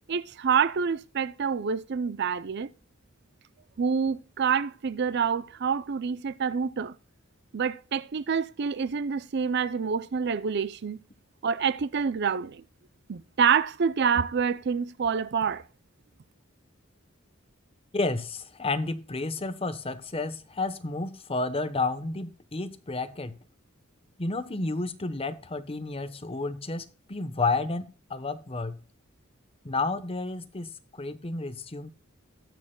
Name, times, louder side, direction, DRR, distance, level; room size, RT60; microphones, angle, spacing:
voice 1, 0.1-2.7 3.8-6.9 7.5-11.0 11.4-12.6 13.1-15.6, right 6 dB, 55° right, 0.5 m, -27 dB
voice 2, 17.9-23.3 24.2-28.8 29.6-31.9, left 3 dB, 30° left, 1.0 m, -31 dB
20.0 x 6.7 x 2.2 m
head